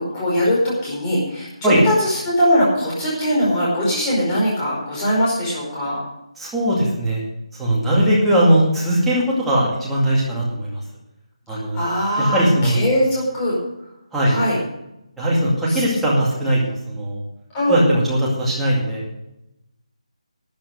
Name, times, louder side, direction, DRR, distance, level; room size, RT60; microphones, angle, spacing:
voice 1, 0.0-6.0 11.5-13.6 14.2-14.6 15.7-15.8 17.5-17.8, equal, 10° left, -6 dB, 4.9 m, -21 dB
voice 2, 6.4-7.2 7.6-10.8 11.5-11.8 12.2-12.8 14.1-14.4 15.2-16.6 16.9-17.2 17.7-19.0, right 1 dB, 5° right, -7 dB, 2.2 m, -19 dB
12.5 x 9.1 x 6.5 m, 0.87 s
figure-of-eight pair, 175°, 4 cm